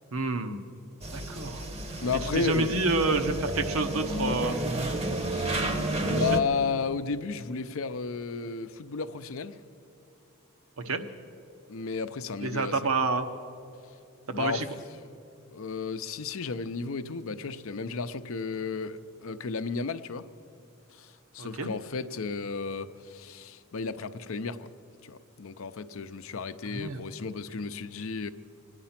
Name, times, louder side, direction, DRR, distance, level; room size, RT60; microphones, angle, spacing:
voice 1, 0.1-0.6 1.1-1.6 2.3-4.6 6.0-6.4 10.8-11.0 12.4-13.3 14.3-14.7 21.4-21.7 26.7-27.0, right 3 dB, 70° right, 1.0 m, -28 dB
sound 1, 1.0-6.4, right 2 dB, 30° right, 0.9 m, -31 dB
voice 2, 2.0-2.8 5.2-9.6 11.7-12.8 14.3-14.7 15.5-20.3 20.9-24.7 25.0-28.3, left 5 dB, 65° left, 0.6 m, -33 dB
Acoustic guitar / Strum, 4.4-7.7, right 1 dB, 5° right, 0.4 m, -42 dB
25.0 x 9.7 x 5.8 m
head